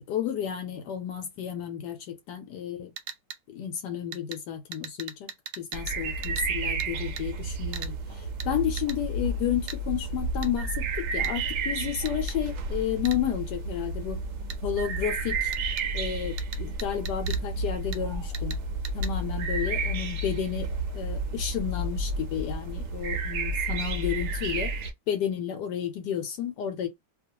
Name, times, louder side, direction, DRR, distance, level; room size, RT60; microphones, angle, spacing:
voice 1, 0.1-2.9 3.5-5.3 5.6-14.2 14.6-15.5 15.9-18.6 18.9-24.7 25.1-26.9, left 9 dB, 75° left, 1.1 m, -32 dB
sound 1, 3.0-3.4 4.1-4.4 4.7-6.0 6.2-6.5 6.8-6.9 7.2-7.3 7.7-7.9 8.4-8.5 8.8-9.0 9.7-9.8 10.4-10.5 11.2-11.3 12.1-12.4 13.1-13.2 14.5-14.6 15.5-15.9 16.4-17.4 17.9-18.0 18.3-18.6 18.8-19.1, right 8 dB, 90° right, 1.3 m, -39 dB
sound 2, 5.7-24.9, right 2 dB, 65° right, 0.7 m, -31 dB
2.8 x 2.3 x 2.8 m
omnidirectional pair, 1.9 m